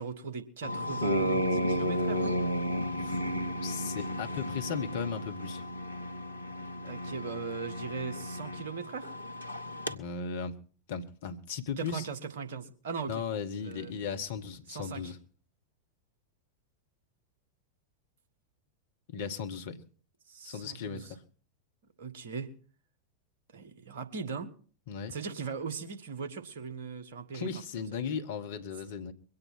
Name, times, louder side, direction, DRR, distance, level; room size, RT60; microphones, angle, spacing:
voice 1, 0.0-2.4 6.8-9.1 11.8-13.2 13.6-13.9 14.7-15.1 20.3-21.1 22.0-22.5 23.5-24.5 25.1-27.5, right 5 dB, 60° right, 7 dB, 1.8 m, -39 dB
sound 1, 0.6-9.9, equal, 85° left, 1.0 m, -33 dB
voice 2, 3.6-5.6 9.9-10.6 10.9-12.0 13.1-15.2 19.1-19.8 20.4-21.2 24.9-25.1 27.3-29.1, left 6 dB, 55° left, 8 dB, 1.5 m, -36 dB
22.5 x 8.8 x 6.1 m, 0.42 s
figure-of-eight pair, 90°, 0 cm